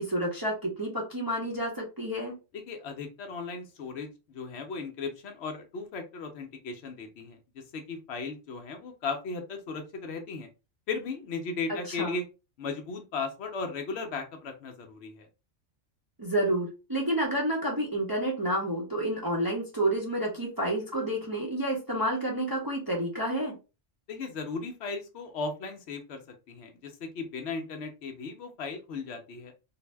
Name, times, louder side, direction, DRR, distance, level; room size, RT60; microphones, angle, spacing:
voice 1, 0.0-2.3 11.7-12.2 16.2-23.5, right 1 dB, 25° right, -2 dB, 0.5 m, -29 dB
voice 2, 2.5-10.5 10.9-12.2 12.6-15.3 24.1-26.2 26.5-29.5, left 4 dB, 65° left, 5 dB, 0.8 m, -36 dB
2.5 x 2.0 x 3.2 m, 0.30 s
omnidirectional pair, 1.2 m